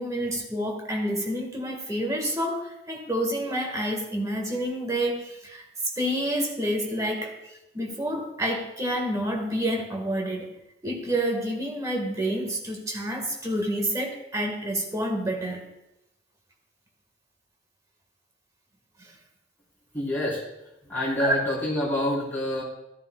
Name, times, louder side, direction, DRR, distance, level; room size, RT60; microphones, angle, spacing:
voice 1, 0.0-5.6 5.9-10.5 10.8-15.6 19.0-19.1 21.2-21.3, right 1 dB, 15° right, 1 dB, 1.5 m, -28 dB
voice 2, 19.9-20.4 20.9-22.6, left 1 dB, 10° left, -7 dB, 3.8 m, -27 dB
13.5 x 12.0 x 2.3 m, 0.88 s
head